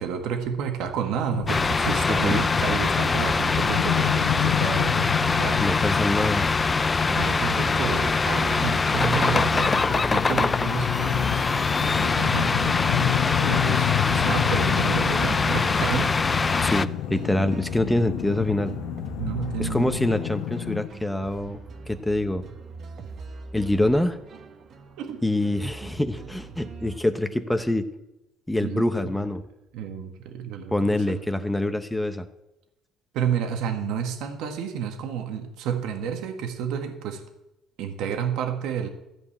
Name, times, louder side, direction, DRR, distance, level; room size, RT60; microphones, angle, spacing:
voice 1, 0.0-5.6 7.1-11.5 11.8-16.1 19.2-20.1 25.0-25.2 28.6-28.8 29.7-31.2 33.1-37.2 37.8-38.9, right 8 dB, 75° right, 4 dB, 1.7 m, -31 dB
sound 1, 1.3-20.9, left 15 dB, 80° left, 0.4 m, -30 dB
sound 2, 1.5-16.9, left 4 dB, 25° left, 0.4 m, -23 dB
voice 2, 2.1-2.5 5.6-6.5 16.6-18.8 19.6-21.6 21.9-22.4 23.5-24.2 25.2-27.9 28.5-29.4 30.7-32.3, left 1 dB, 5° left, 9 dB, 0.9 m, -25 dB
sound 3, 13.9-27.0, right 4 dB, 50° right, 1.4 m, -42 dB
14.0 x 5.4 x 8.6 m, 0.91 s
cardioid pair, 95°, 0 cm